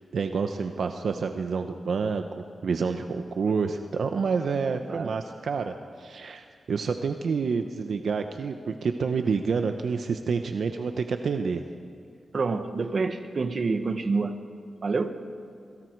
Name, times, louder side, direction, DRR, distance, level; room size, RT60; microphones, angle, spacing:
voice 1, 0.1-2.2 2.6-11.6, right 5 dB, 80° right, 6 dB, 1.0 m, -28 dB
voice 2, 12.3-14.4 14.8-15.2, right 4 dB, 55° right, 8 dB, 1.4 m, -27 dB
28.0 x 24.0 x 4.8 m, 2.2 s
wide cardioid pair, 85°, 0 cm